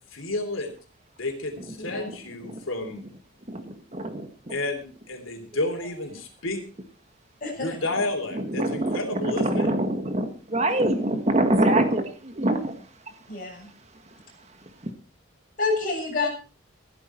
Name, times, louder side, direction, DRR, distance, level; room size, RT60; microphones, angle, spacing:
voice 1, 0.1-0.7 1.2-3.0 4.5-6.6 7.6-9.7, left 2 dB, 90° left, 5 dB, 3.3 m, -31 dB
voice 2, 3.5-4.5 8.3-12.7 14.8-14.9, right 1 dB, 35° right, 7 dB, 1.6 m, -25 dB
voice 3, 13.3-13.7 15.6-16.3, left 3 dB, 45° left, -1 dB, 7.4 m, -28 dB
15.0 x 13.0 x 4.5 m, 0.36 s
head